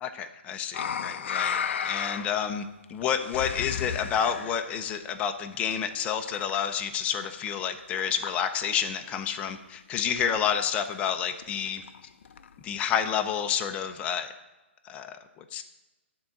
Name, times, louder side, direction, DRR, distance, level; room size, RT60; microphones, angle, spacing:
voice 1, 0.0-2.6 2.9-11.8 12.6-14.3 14.8-15.6, left 8 dB, 20° left, 6 dB, 0.5 m, -29 dB
sound 1, 0.7-2.5 2.8-4.6 5.5-6.8 7.1-7.6 8.0-8.8 9.1-9.2 9.4-9.5 9.8-9.9 10.1-10.5 10.9-11.0 11.4-12.7 13.3-13.4, left 7 dB, 70° left, 0.5 m, -34 dB
10.5 x 3.8 x 5.8 m, 1.1 s
hypercardioid pair, 145°, 7 cm